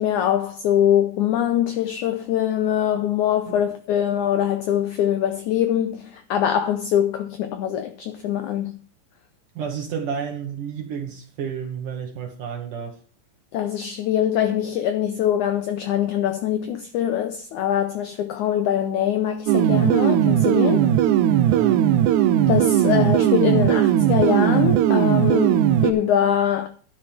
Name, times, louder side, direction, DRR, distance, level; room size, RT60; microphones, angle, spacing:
voice 1, 0.0-8.8 13.5-20.8 22.5-26.7, left 10 dB, 75° left, 1.8 m, -23 dB
voice 2, 9.6-13.0 20.8-21.1 21.3-22.0, right 7 dB, 65° right, 2.6 m, -31 dB
sound 1, 19.5-25.9, right 11 dB, 90° right, 1.7 m, -18 dB
11.5 x 11.0 x 3.4 m
omnidirectional pair, 4.4 m